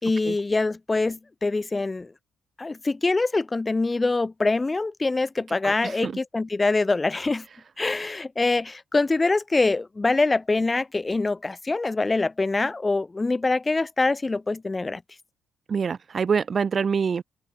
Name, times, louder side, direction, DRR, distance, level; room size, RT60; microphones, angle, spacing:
voice 1, 0.0-2.1 2.6-7.4 7.8-15.0, left 3 dB, 20° left, 6.5 m, -24 dB
voice 2, 5.6-6.1 15.7-17.2, right 6 dB, 45° right, 2.0 m, -25 dB
open air
cardioid pair, 90°, 0 cm